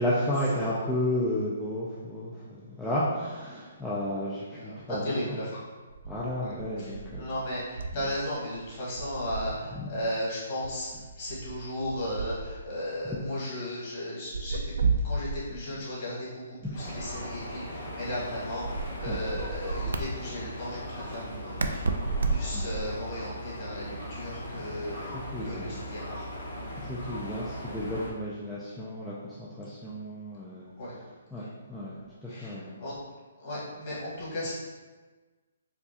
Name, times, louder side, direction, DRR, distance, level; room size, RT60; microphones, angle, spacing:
voice 1, 0.0-5.4 6.0-7.3 9.7-9.9 13.0-13.2 16.6-16.7 17.7-17.9 19.1-19.2 22.5-22.6 25.1-25.7 26.9-30.7 31.3-31.9 32.2-32.8, left 1 dB, ahead, -10 dB, 0.3 m, -32 dB
voice 2, 4.6-5.6 6.4-14.6 15.0-21.8 22.2-26.3 26.6-26.7 30.8-30.9 31.4-31.5 32.3-32.9 33.4-34.5, left 1 dB, 35° left, -8 dB, 1.4 m, -35 dB
sound 1, 5.9-8.2 8.5-9.7 10.6-12.8 14.3-15.6 17.0-18.0 18.6-20.1 21.6-23.0, right 4 dB, 80° right, 0.3 m, -33 dB
sound 2, 16.7-28.1, left 1 dB, 55° left, 1.2 m, -39 dB
4.5 x 2.3 x 2.8 m, 1.3 s
hypercardioid pair, 165°, 0 cm